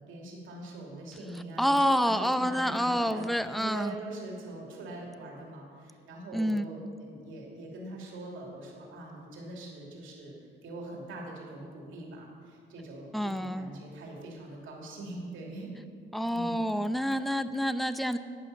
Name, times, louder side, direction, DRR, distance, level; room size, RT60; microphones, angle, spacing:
voice 1, 0.0-10.3 10.6-15.7 16.3-16.7, right 2 dB, 80° right, -1 dB, 2.7 m, -43 dB
voice 2, 1.6-3.9 6.3-6.7 13.1-13.7 16.1-18.2, equal, ahead, 11 dB, 0.6 m, -28 dB
11.5 x 8.6 x 6.8 m, 2.2 s
cardioid pair, 90°, 20 cm